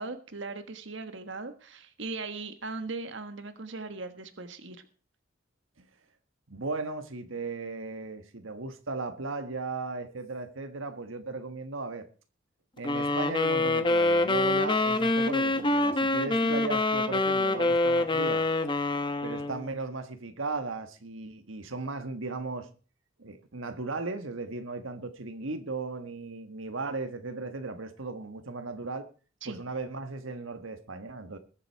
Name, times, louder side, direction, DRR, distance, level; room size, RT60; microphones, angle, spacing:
voice 1, 0.0-4.8 16.6-16.7 29.4-29.6, right 3 dB, 65° right, 1.5 m, -39 dB
voice 2, 6.5-12.1 12.8-18.4 19.2-22.7 23.2-29.1 29.4-31.4, right 3 dB, 85° right, 1.5 m, -36 dB
sound 1, 12.8-19.7, left 2 dB, 25° left, 1.1 m, -26 dB
21.0 x 7.5 x 4.6 m
head